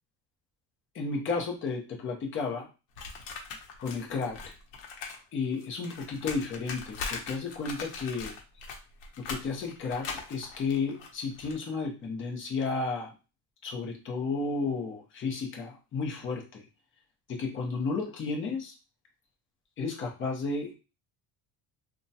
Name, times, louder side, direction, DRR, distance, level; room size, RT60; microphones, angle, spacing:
voice 1, 0.9-2.7 3.8-4.5 5.3-8.3 9.2-13.1 13.6-16.7 17.3-18.7 19.8-20.8, left 4 dB, 30° left, 0 dB, 0.7 m, -33 dB
sound 1, 3.0-5.2 5.5-11.6, left 5 dB, 85° left, 0.9 m, -41 dB
2.9 x 2.3 x 2.7 m, 0.30 s
cardioid pair, 165°, 42 cm